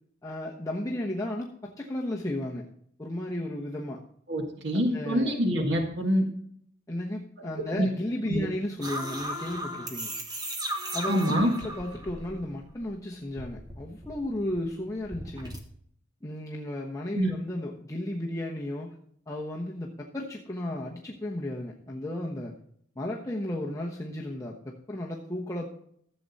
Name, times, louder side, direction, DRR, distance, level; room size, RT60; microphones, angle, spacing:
voice 1, 0.2-2.7 3.0-4.0 4.9-5.4 6.9-10.2 10.9-15.6 16.2-19.0 19.3-22.6 23.0-25.7, left 1 dB, 15° left, -2 dB, 1.1 m, -34 dB
voice 2, 4.3-6.2 7.4-7.5 7.8-7.9 8.3-8.5 11.1-11.5 17.1-17.3, equal, 60° right, 3 dB, 1.8 m, -25 dB
sound 1, 8.8-12.8 13.1-15.6, right 1 dB, 20° right, 1.5 m, -37 dB
14.5 x 7.8 x 4.1 m, 0.66 s
head